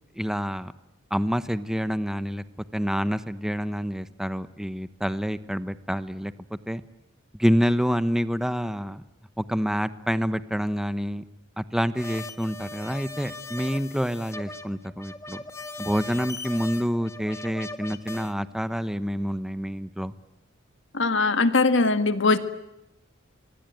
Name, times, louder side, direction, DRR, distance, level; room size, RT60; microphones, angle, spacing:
voice 1, 0.2-0.7 1.1-2.4 2.7-6.3 6.7-6.8 7.4-9.0 9.4-11.2 11.6-15.4 15.8-20.1, equal, 5° right, 12 dB, 1.0 m, -27 dB
sound 1, 12.0-18.3, left 2 dB, 15° left, 1.6 m, -39 dB
voice 2, 20.9-22.4, left 3 dB, 65° left, 9 dB, 1.9 m, -21 dB
25.0 x 25.0 x 9.4 m, 0.92 s
head